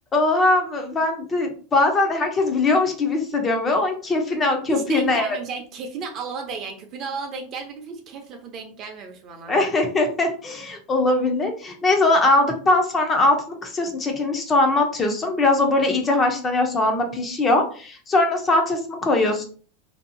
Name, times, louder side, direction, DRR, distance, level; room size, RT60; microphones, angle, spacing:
voice 1, 0.1-5.3 9.5-19.4, left 2 dB, 20° left, 4 dB, 0.5 m, -21 dB
voice 2, 4.7-9.5, right 4 dB, 35° right, 4 dB, 0.6 m, -33 dB
2.7 x 2.3 x 2.5 m, 0.41 s
supercardioid pair, 150°, 0 cm